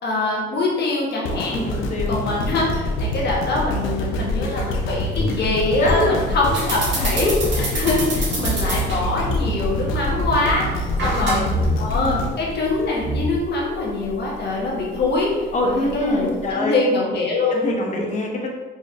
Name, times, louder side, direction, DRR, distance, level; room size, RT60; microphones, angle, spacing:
voice 1, 0.0-1.6 2.1-11.4 11.8-15.3 15.6-17.7, left 2 dB, 55° left, -3 dB, 1.1 m, -23 dB
sound 1, 1.3-13.5 14.0-14.1, left 1 dB, 90° left, 0.5 m, -26 dB
voice 2, 1.5-2.2 5.8-6.2 10.8-11.7 15.5-16.8 17.5-18.5, left 1 dB, 35° left, -1 dB, 0.8 m, -25 dB
sound 2, 5.2-7.6 7.9-8.0 8.3-8.6 9.1-9.6 10.0-10.5 11.5-11.9 12.6-12.7 13.0-13.6, equal, 15° right, 0.5 m, -27 dB
sound 3, 6.5-16.5, right 2 dB, 65° right, 1.2 m, -30 dB
4.0 x 2.8 x 2.5 m, 1.3 s
cardioid pair, 90°, 20 cm